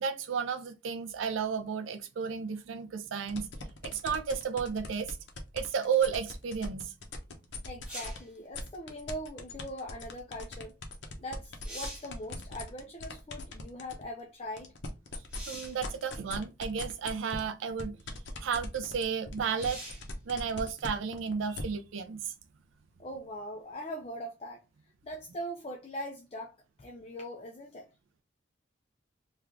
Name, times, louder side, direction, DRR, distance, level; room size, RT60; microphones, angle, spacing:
voice 1, 0.0-3.5 3.8-5.2 5.5-6.9 15.5-18.0 18.4-19.8 20.3-22.3, right 6 dB, 80° right, 0.4 m, -33 dB
sound 1, 3.3-8.2 8.5-14.0 14.4-21.6, left 3 dB, 70° left, 0.7 m, -41 dB
voice 2, 7.7-10.7 11.2-14.7 23.0-24.6 25.0-27.9, equal, 30° left, 0.4 m, -41 dB
sound 2, 7.9-8.3 11.0-11.1 11.5-12.2 15.3-15.8 16.9-17.0 19.5-20.1 23.7-23.8, right 1 dB, 5° right, 0.9 m, -43 dB
3.3 x 2.3 x 3.6 m
head